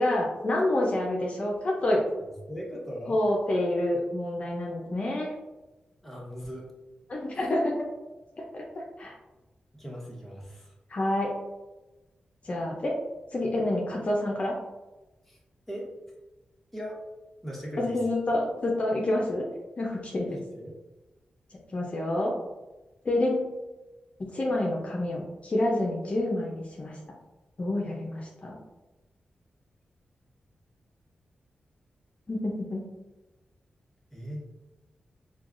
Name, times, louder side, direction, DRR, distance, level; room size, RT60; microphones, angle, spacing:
voice 1, 0.0-2.0 3.1-5.3 7.1-7.8 8.4-8.6 9.0-9.1 10.9-11.4 12.4-13.0 13.3-14.5 17.8-19.5 19.8-20.4 21.7-22.3 23.0-23.5 24.3-27.0 27.6-28.6 32.3-32.9, left 1 dB, 45° left, -2 dB, 0.5 m, -28 dB
voice 2, 2.5-3.2 6.0-6.6 9.7-10.7 15.3-15.4 15.7-15.9 16.7-17.0 17.4-18.2 20.3-20.7 34.1-34.4, equal, 5° left, -4 dB, 1.1 m, -39 dB
4.5 x 2.3 x 2.5 m, 1.1 s
cardioid pair, 75°, 3 cm